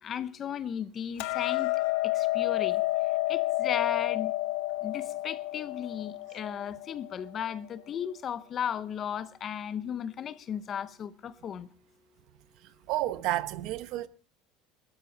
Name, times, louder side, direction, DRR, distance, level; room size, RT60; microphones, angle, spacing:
voice 1, 0.0-1.7 2.0-2.8 3.3-4.3 4.8-11.7, left 8 dB, 25° left, 0.7 m, -35 dB
Hammer, 1.2-7.4, left 19 dB, 70° left, 1.4 m, -30 dB
voice 2, 12.6-14.1, right 15 dB, 50° right, 0.9 m, -31 dB
21.0 x 13.0 x 4.0 m
cardioid pair, 170°, 0 cm